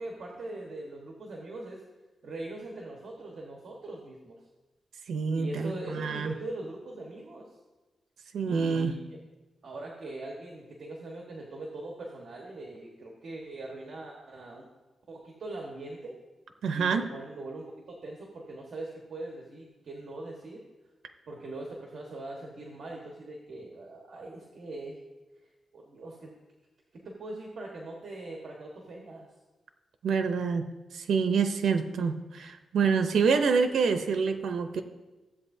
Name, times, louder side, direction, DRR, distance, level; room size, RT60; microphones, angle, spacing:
voice 1, 0.0-1.8 2.2-4.4 5.3-7.5 8.4-9.2 9.6-14.6 15.1-16.2 16.7-20.6 21.3-25.0 25.7-26.3 27.0-29.3, right 2 dB, 60° right, -1 dB, 1.4 m, -41 dB
voice 2, 5.1-6.3 8.3-8.9 16.6-17.1 30.0-30.7 30.9-34.8, right 5 dB, 85° right, 7 dB, 0.7 m, -27 dB
15.5 x 8.0 x 2.7 m, 1.2 s
wide cardioid pair, 140°, 0 cm